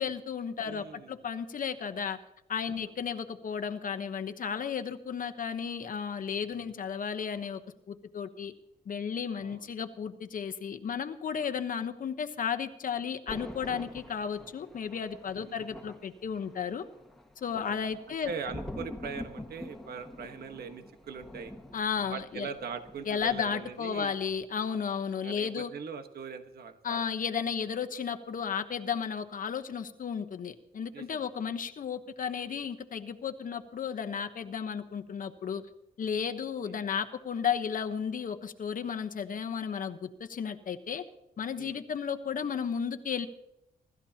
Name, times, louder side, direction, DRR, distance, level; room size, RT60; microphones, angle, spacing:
voice 1, 0.0-2.2 2.5-7.6 7.9-8.5 8.9-16.8 17.4-18.3 21.7-22.5 23.1-25.7 26.8-35.6 36.0-41.0 41.4-43.3, left 7 dB, 55° left, 9 dB, 1.0 m, -34 dB
voice 2, 0.6-1.2 2.7-2.9 6.5-6.7 9.4-9.7 15.4-15.8 17.6-17.8 18.2-21.5 22.1-24.1 25.2-27.0 30.9-31.2 36.6-36.7 41.6-41.8, right 6 dB, 65° right, 7 dB, 1.3 m, -41 dB
Thunder, 13.3-23.9 24.2-24.5, left 1 dB, ahead, 1.7 m, -46 dB
25.0 x 13.0 x 2.9 m, 0.84 s
cardioid pair, 105°, 17 cm